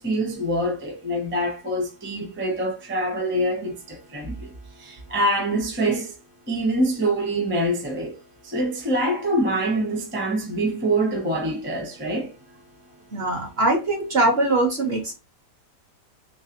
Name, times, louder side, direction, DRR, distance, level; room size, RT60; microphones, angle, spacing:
voice 1, 0.0-4.5 4.8-6.1 6.5-8.2 8.4-12.3, right 1 dB, 10° right, 0.5 m, -25 dB
voice 2, 13.1-15.1, right 2 dB, 45° right, 0.9 m, -22 dB
3.2 x 3.1 x 2.9 m
omnidirectional pair, 1.8 m